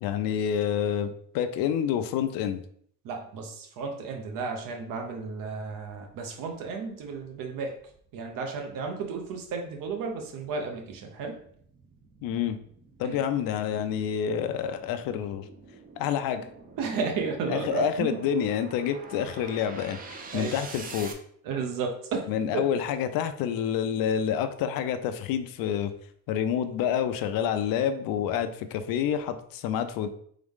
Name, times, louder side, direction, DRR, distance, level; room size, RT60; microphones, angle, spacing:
voice 1, 0.0-2.6 12.2-12.6 13.0-15.5 16.0-16.5 17.5-21.1 22.3-25.9 26.3-30.1, left 9 dB, 85° left, 10 dB, 0.6 m, -28 dB
voice 2, 3.0-7.7 8.1-11.4 13.0-13.2 16.8-18.2 20.3-20.5 21.4-22.6, right 4 dB, 75° right, 3 dB, 1.0 m, -33 dB
sound 1, 7.8-21.1, right 4 dB, 25° right, 0.4 m, -47 dB
3.7 x 3.6 x 3.6 m, 0.63 s
cardioid pair, 165°, 33 cm